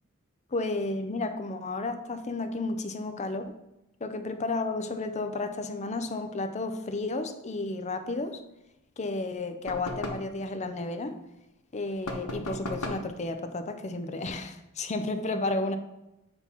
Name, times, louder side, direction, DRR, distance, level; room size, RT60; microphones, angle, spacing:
voice 1, 0.5-3.5 4.0-8.4 9.0-11.2 11.7-15.8, left 2 dB, 30° left, 8 dB, 0.6 m, -32 dB
sound 1, 9.7-10.3 12.0-13.1, left 1 dB, 90° left, 1.1 m, -36 dB
7.8 x 3.0 x 5.5 m, 0.92 s
head